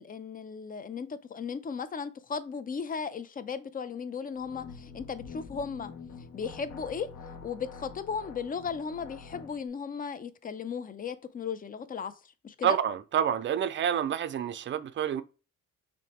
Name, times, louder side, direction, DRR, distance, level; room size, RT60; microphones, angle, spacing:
voice 1, 0.0-5.9 6.3-12.8, left 6 dB, 30° left, 0.4 m, -36 dB
sound 1, 4.4-9.6, left 5 dB, 65° left, 0.7 m, -46 dB
voice 2, 12.6-15.2, right 9 dB, 40° right, 0.4 m, -28 dB
5.9 x 2.2 x 2.9 m
cardioid pair, 90°, 30 cm